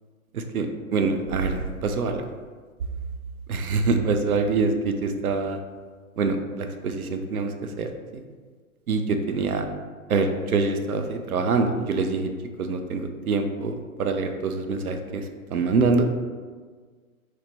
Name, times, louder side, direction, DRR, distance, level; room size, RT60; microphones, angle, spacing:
voice 1, 0.3-0.7 0.9-2.2 3.5-5.6 6.2-8.2 8.9-9.7 10.1-12.3 12.6-15.2 15.5-16.1, right 4 dB, 85° right, 6 dB, 0.5 m, -25 dB
3.0 x 2.1 x 4.2 m, 1.5 s
figure-of-eight pair, 125°, 43 cm